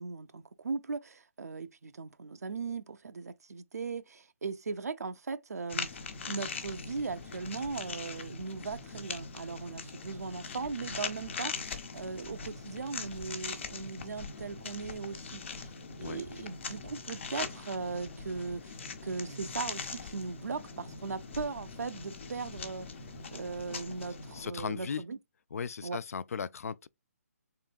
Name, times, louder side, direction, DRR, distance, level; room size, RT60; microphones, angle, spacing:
voice 1, 0.0-6.0 6.3-15.7 16.0-22.9 23.3-25.2 25.8-26.0, right 4 dB, 90° right, 0.5 m, -38 dB
sound 1, 5.7-24.5, left 4 dB, 50° left, 1.0 m, -41 dB
voice 2, 24.3-25.0 25.5-26.9, left 6 dB, 70° left, 0.4 m, -37 dB
3.7 x 3.6 x 2.3 m
hypercardioid pair, 155°, 8 cm